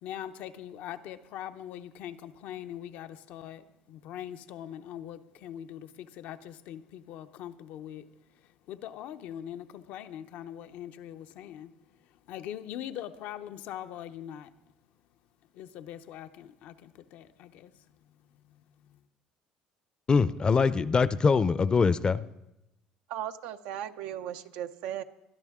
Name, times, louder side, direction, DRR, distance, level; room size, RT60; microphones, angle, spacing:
voice 1, 0.0-8.0 8.7-11.7 12.3-14.5 15.5-17.7, left 11 dB, 75° left, 10 dB, 0.7 m, -42 dB
voice 2, 20.1-22.2, left 5 dB, 30° left, 16 dB, 0.6 m, -23 dB
voice 3, 23.1-25.0, right 11 dB, 80° right, 8 dB, 0.6 m, -36 dB
21.0 x 12.0 x 3.7 m, 0.92 s
supercardioid pair, 85°, 3 cm